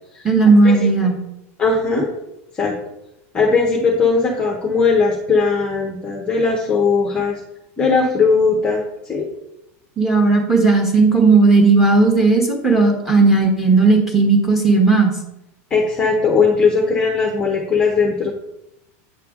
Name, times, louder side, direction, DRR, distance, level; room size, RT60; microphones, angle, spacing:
voice 1, 0.2-1.2 10.0-15.1, right 3 dB, 5° right, 1 dB, 1.1 m, -14 dB
voice 2, 1.6-2.1 2.5-2.7 3.3-7.4 7.8-8.8 9.1-9.3 15.7-18.3, left 4 dB, 10° left, 0 dB, 0.7 m, -18 dB
8.7 x 6.6 x 3.6 m, 0.87 s
supercardioid pair, 180°, 8 cm